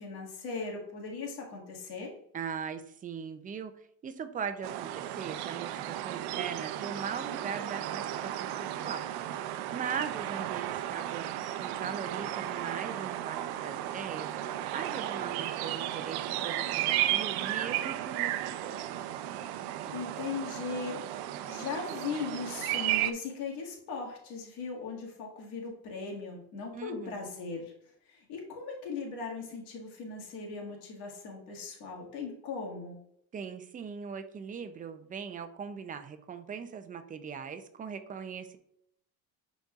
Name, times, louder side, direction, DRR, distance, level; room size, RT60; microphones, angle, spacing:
voice 1, 0.0-2.1 19.9-21.0 21.5-27.7 28.1-33.0, left 4 dB, 90° left, -1 dB, 1.9 m, -38 dB
voice 2, 2.3-3.8 4.0-9.1 9.7-11.3 11.6-18.7 26.7-27.3 33.3-38.6, right 6 dB, 20° right, 9 dB, 0.4 m, -40 dB
sound 1, 4.6-23.1, right 12 dB, 75° right, 0.6 m, -34 dB
10.0 x 4.1 x 2.4 m, 0.71 s
cardioid pair, 150°, 39 cm